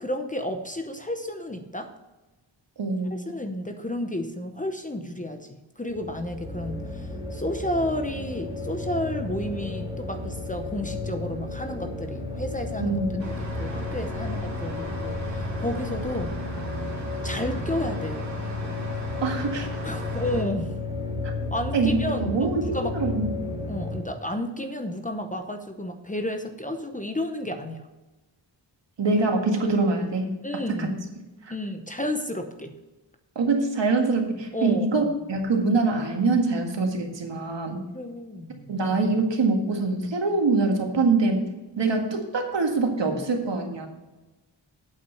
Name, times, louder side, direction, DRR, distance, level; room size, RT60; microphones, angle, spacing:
voice 1, 0.0-1.9 3.3-13.0 13.2-16.3 17.2-18.2 19.8-20.7 21.5-22.9 23.7-27.9 30.4-31.0 31.5-32.7 34.5-35.1 37.9-38.7, left 1 dB, 15° left, 6 dB, 0.8 m, -32 dB
voice 2, 2.8-3.1 12.8-13.2 19.2-19.7 21.7-23.3 29.0-30.3 30.7-30.9 31.4-31.5 33.4-37.8 38.7-41.4 41.8-43.9, right 3 dB, 65° right, 2 dB, 1.9 m, -24 dB
sound 1, 5.9-24.0, left 2 dB, 10° right, 2.5 m, -32 dB
sound 2, 13.2-20.4, right 2 dB, 35° right, 2.2 m, -39 dB
8.6 x 8.3 x 5.7 m, 1.1 s
wide cardioid pair, 165°, 46 cm